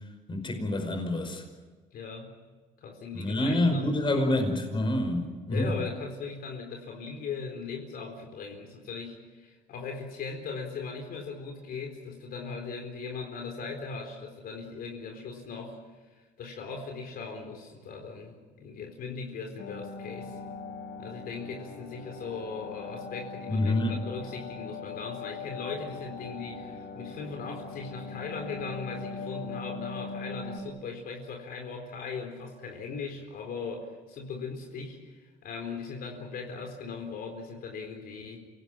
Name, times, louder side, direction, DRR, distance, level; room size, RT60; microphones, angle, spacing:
voice 1, 0.3-1.4 3.1-5.7 23.5-24.0, left 1 dB, 30° left, 5 dB, 5.3 m, -27 dB
voice 2, 1.9-2.3 2.8-4.2 5.5-15.8 16.4-20.4 21.0-38.4, left 5 dB, 65° left, 2 dB, 4.2 m, -39 dB
sound 1, 19.6-30.6, left 4 dB, 80° left, 3.1 m, -41 dB
27.5 x 18.0 x 9.0 m, 1.4 s
cardioid pair, 110°, 17 cm